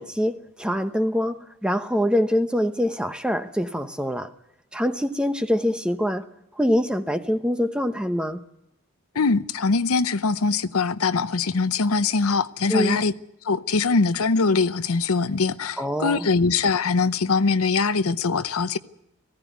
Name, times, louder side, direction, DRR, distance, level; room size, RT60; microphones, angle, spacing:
voice 1, 0.0-4.3 4.7-6.2 6.6-8.4 12.7-13.0 15.8-16.3, equal, 5° right, 0.8 m, -24 dB
voice 2, 9.1-13.1 13.4-18.8, left 4 dB, 80° left, 0.7 m, -22 dB
19.0 x 16.0 x 9.4 m
head